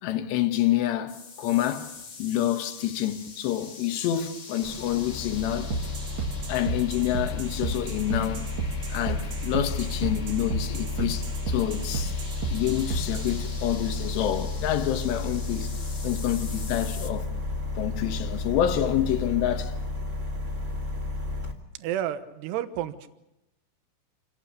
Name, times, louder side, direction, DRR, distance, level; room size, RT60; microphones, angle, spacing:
voice 1, 0.0-1.9 2.2-5.8 6.5-8.5 8.9-12.2 12.5-15.8 16.0-17.3 17.8-19.8, left 12 dB, 70° left, 3.2 m, -27 dB
sound 1, 1.1-17.1, left 4 dB, 50° left, 1.3 m, -45 dB
sound 2, 4.6-21.5, left 3 dB, 30° right, 1.4 m, -32 dB
sound 3, 5.7-13.4, right 4 dB, 90° right, 1.4 m, -33 dB
voice 2, 21.8-23.1, right 11 dB, 70° right, 2.8 m, -31 dB
28.0 x 18.0 x 6.9 m
omnidirectional pair, 5.8 m